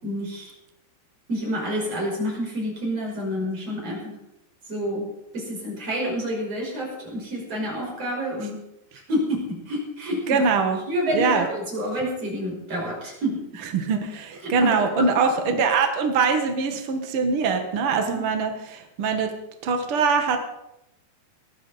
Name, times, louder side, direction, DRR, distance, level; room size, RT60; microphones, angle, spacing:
voice 1, 0.0-0.5 1.3-4.2 4.7-8.6 9.1-10.4 10.8-13.4 14.4-15.1 15.5-15.6 18.1-18.2, equal, 35° right, -2 dB, 6.4 m, -28 dB
voice 2, 10.3-10.8 11.1-11.5 13.7-19.3 19.6-20.4, right 5 dB, 75° right, 5 dB, 1.2 m, -23 dB
19.5 x 14.5 x 4.2 m, 0.88 s
omnidirectional pair, 5.0 m